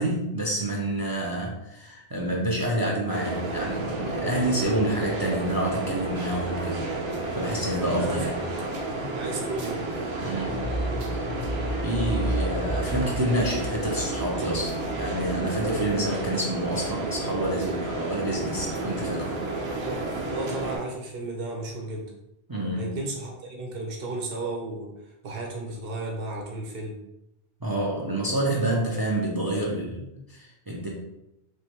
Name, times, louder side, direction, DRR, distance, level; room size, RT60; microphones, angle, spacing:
voice 1, 0.0-6.9 7.3-8.4 10.2-10.6 11.1-11.3 11.8-19.3 22.5-22.9 27.6-30.0 30.3-30.9, right 1 dB, 35° right, -2 dB, 0.3 m, -28 dB
sound 1, 3.1-20.8, right 2 dB, 85° right, 1.0 m, -31 dB
voice 2, 8.0-8.3 8.9-9.8 19.7-20.0 20.3-22.1 22.8-27.0 30.0-30.2, right 2 dB, 55° right, 0 dB, 0.9 m, -34 dB
sound 2, 10.4-18.2 18.5-18.6, equal, 45° left, 0.6 m, -34 dB
3.3 x 3.1 x 2.9 m, 0.87 s
omnidirectional pair, 1.2 m